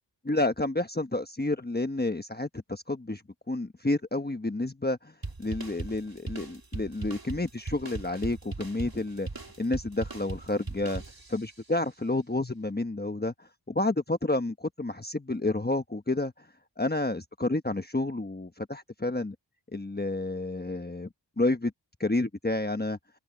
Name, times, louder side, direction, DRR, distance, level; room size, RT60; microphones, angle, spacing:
voice 1, 0.2-3.2 3.5-5.1 5.4-9.3 9.6-11.0 11.3-16.5 16.8-19.3 19.7-21.1 21.4-21.7 22.0-23.0, left 2 dB, 20° left, 1.1 m, -30 dB
sound 1, 5.2-11.6, right 3 dB, 50° right, 3.0 m, -39 dB
wide cardioid pair, 65°, 45 cm